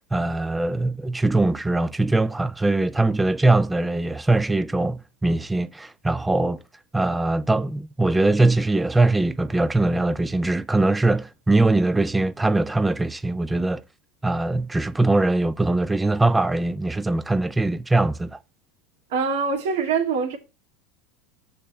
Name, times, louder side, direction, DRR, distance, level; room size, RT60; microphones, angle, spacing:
voice 1, 0.0-6.6 6.9-13.8 14.2-18.4, right 2 dB, 10° right, 0.4 m, -21 dB
voice 2, 19.1-20.4, right 5 dB, 80° right, 2.1 m, -24 dB
6.6 x 4.0 x 6.3 m
supercardioid pair, 125°, 0 cm